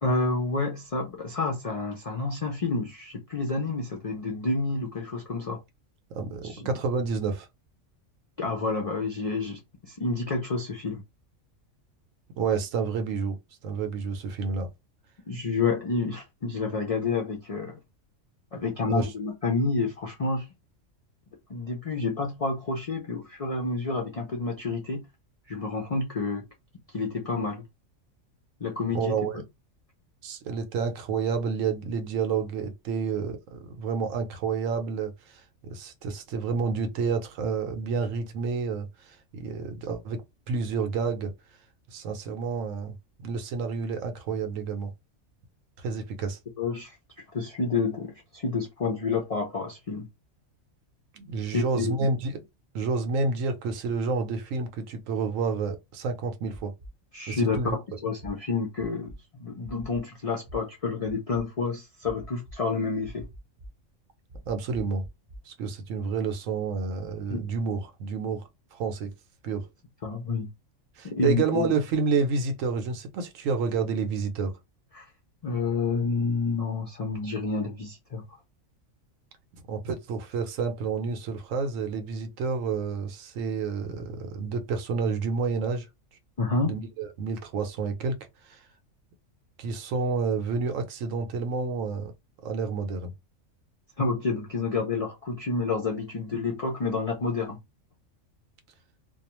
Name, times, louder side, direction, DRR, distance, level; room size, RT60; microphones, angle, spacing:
voice 1, 0.0-5.6 6.4-6.7 8.4-11.0 15.3-17.8 18.5-20.5 21.5-25.0 25.5-26.4 26.9-27.6 28.6-29.2 46.6-46.9 47.3-50.1 51.5-51.9 57.1-57.6 58.0-59.1 59.4-63.3 67.3-67.4 70.0-70.5 71.0-71.7 74.9-75.1 75.4-78.2 86.4-86.7 94.0-97.6, left 3 dB, 65° left, 0.3 m, -29 dB
voice 2, 6.1-7.5 12.4-13.4 13.6-14.7 18.9-19.1 28.9-29.4 30.2-40.2 40.5-41.3 41.9-43.0 43.2-44.9 45.8-46.4 51.1-52.4 52.7-56.7 57.3-57.8 64.5-65.0 65.5-68.4 68.7-69.1 69.4-69.7 71.0-74.5 79.7-85.9 86.6-88.2 88.4-88.6 89.6-92.1 92.4-93.1, right 5 dB, 85° right, 1.0 m, -29 dB
sound 1, 56.5-56.9 57.5-57.7 58.2-58.3 58.8-59.1 59.6-60.0 60.5-60.6 61.0-61.4 62.0-62.5 63.0-63.7 64.3-65.4, equal, 30° right, 0.7 m, -43 dB
2.3 x 2.3 x 2.9 m
omnidirectional pair, 1.3 m